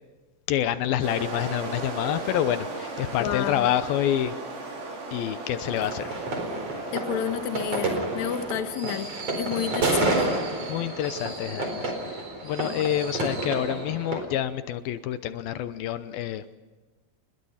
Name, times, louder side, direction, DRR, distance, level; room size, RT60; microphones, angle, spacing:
voice 1, 0.5-4.3 5.1-6.2 10.7-16.5, left 11 dB, 80° left, 11 dB, 2.7 m, -28 dB
sound 1, 1.0-8.5, right 2 dB, 90° right, 7.2 m, -36 dB
voice 2, 3.2-3.7 6.9-10.3, left 9 dB, 60° left, 8 dB, 2.4 m, -31 dB
sound 2, 5.7-14.2, right 2 dB, 40° right, 5.2 m, -30 dB
30.0 x 21.5 x 5.7 m, 1.3 s
omnidirectional pair, 4.2 m